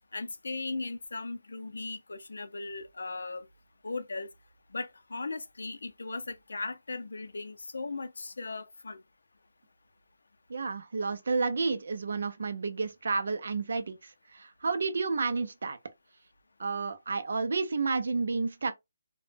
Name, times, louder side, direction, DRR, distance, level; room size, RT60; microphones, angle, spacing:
voice 1, 0.1-3.5 3.8-4.3 4.7-9.0, left 3 dB, 75° left, 0.4 m, -37 dB
voice 2, 10.5-15.8 16.6-18.7, right 4 dB, 50° right, 0.4 m, -31 dB
2.0 x 2.0 x 3.2 m
hypercardioid pair, 180°, 0 cm